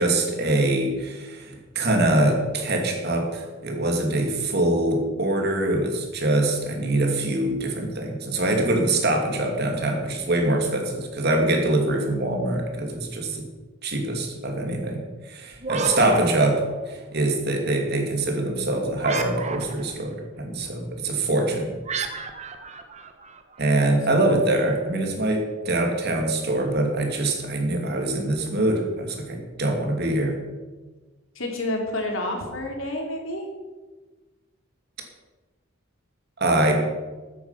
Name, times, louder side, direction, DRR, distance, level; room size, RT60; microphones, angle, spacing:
voice 1, 0.0-13.5 13.8-21.7 23.6-30.4 36.4-36.7, right 1 dB, 55° right, 2 dB, 2.7 m, -24 dB
sound 1, 15.5-17.1 19.0-20.0 21.9-23.7, right 4 dB, 35° right, 1.2 m, -32 dB
voice 2, 31.3-33.4, left 1 dB, 85° left, 2 dB, 3.1 m, -29 dB
14.0 x 9.4 x 5.9 m, 1.3 s
head